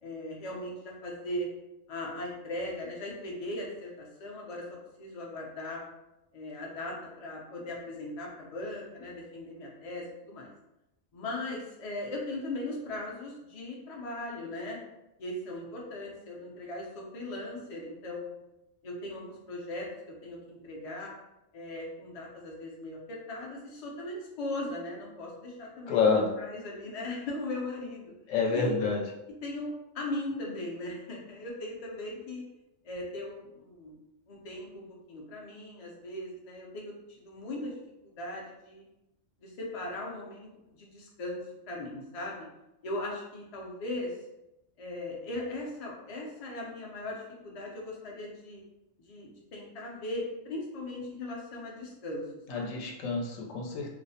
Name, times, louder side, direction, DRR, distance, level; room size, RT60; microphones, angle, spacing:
voice 1, 0.0-1.5 1.9-4.7 5.0-5.8 6.3-10.5 11.1-14.8 15.2-18.3 18.8-21.1 21.5-26.1 26.4-28.1 28.5-28.8 29.4-32.4 32.8-34.0 34.3-37.8 38.0-38.8 39.4-41.4 41.7-42.5 42.8-44.1 44.8-48.6 49.0-52.2 52.5-52.8, left 1 dB, 50° left, -2 dB, 0.4 m, -38 dB
voice 2, 25.9-26.3 28.3-29.0 52.5-54.0, left 5 dB, 90° left, 0 dB, 1.0 m, -28 dB
2.4 x 2.0 x 2.6 m, 0.91 s
omnidirectional pair, 1.3 m